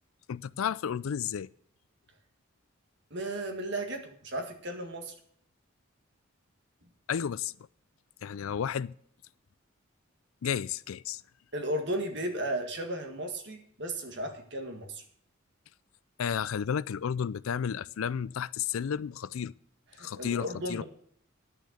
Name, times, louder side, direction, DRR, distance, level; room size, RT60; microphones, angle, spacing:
voice 1, 0.3-1.5 7.1-7.5 8.2-8.9 10.4-11.2 16.2-19.5 20.0-20.8, left 8 dB, 80° left, 0.4 m, -32 dB
voice 2, 3.1-5.1 11.5-15.0 20.0-20.8, right 1 dB, 55° right, 1.8 m, -35 dB
10.5 x 6.4 x 8.0 m
head